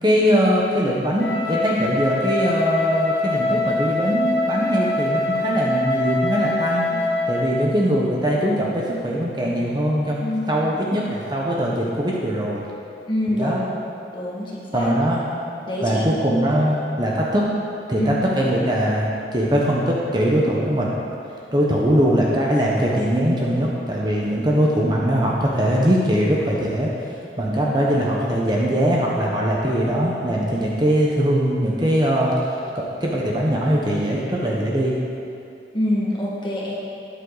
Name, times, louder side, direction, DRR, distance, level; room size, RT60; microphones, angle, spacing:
voice 1, 0.0-6.9 7.3-12.6 13.4-13.6 14.7-15.2 15.8-17.5 17.9-20.9 21.5-26.9 27.4-32.3 32.7-35.0, equal, 25° right, -3 dB, 1.1 m, -21 dB
Wind instrument woodwind instrument, 1.2-7.6, left 2 dB, 80° left, 1.8 m, -24 dB
voice 2, 10.2-10.6 13.1-13.7 14.1-14.9 15.6-16.0 18.0-18.1 35.7-36.7, left 1 dB, 25° left, -5 dB, 1.9 m, -25 dB
12.5 x 10.0 x 4.1 m, 2.6 s
head